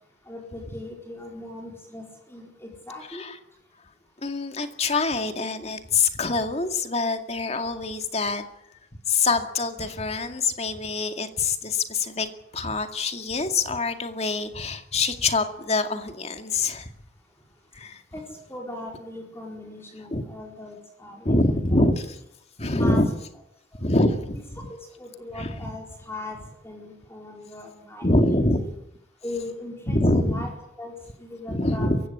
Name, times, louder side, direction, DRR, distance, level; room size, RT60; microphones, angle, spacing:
voice 1, 0.3-3.2 18.1-18.2 18.5-21.9 22.7-23.0 23.7-23.8 24.3-26.4 26.6-28.7 29.2-30.5 30.8-31.9, left 2 dB, 15° left, 0 dB, 4.5 m, -39 dB
voice 2, 4.2-8.4 9.1-12.3 12.5-16.9 17.7-18.0 20.1-20.2 21.2-22.2 22.6-23.1 23.8-24.7 25.4-25.7 28.0-28.6 29.9-30.5 31.5-32.0, left 2 dB, 35° left, 6 dB, 2.2 m, -25 dB
22.5 x 16.5 x 9.9 m, 0.81 s
head